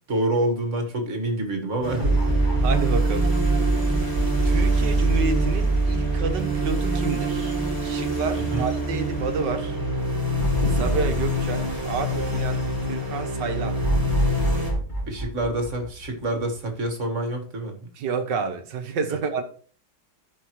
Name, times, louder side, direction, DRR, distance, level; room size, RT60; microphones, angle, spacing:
voice 1, 0.1-2.2 8.4-8.7 15.1-17.7, right 1 dB, 45° right, 2.0 m, -27 dB
sound 1, 1.8-14.7, equal, 10° right, 2.6 m, -27 dB
sound 2, 2.0-8.3 8.7-8.8 10.4-12.9 13.8-16.6, right 2 dB, 25° left, 2.9 m, -24 dB
voice 2, 2.5-3.3 4.4-7.6 7.8-9.8 10.7-13.8 18.0-19.4, right 5 dB, 75° right, 1.8 m, -29 dB
14.0 x 5.5 x 3.1 m
omnidirectional pair, 1.9 m